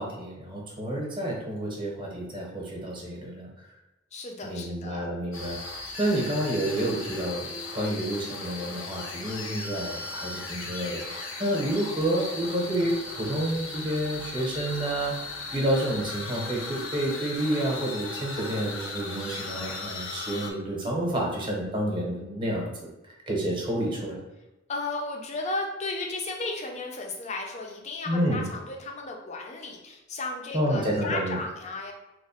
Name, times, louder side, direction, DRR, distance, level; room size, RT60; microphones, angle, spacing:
voice 1, 0.0-3.5 4.4-7.5 7.7-15.1 15.5-22.9 23.3-24.2 28.1-28.4 30.5-31.4, right 1 dB, 25° right, -3 dB, 0.8 m, -29 dB
voice 2, 4.1-5.1 24.7-31.9, left 2 dB, 35° left, 1 dB, 0.5 m, -34 dB
sound 1, 5.3-20.5, left 3 dB, 85° left, 0.6 m, -37 dB
3.0 x 2.1 x 4.2 m, 1.0 s
head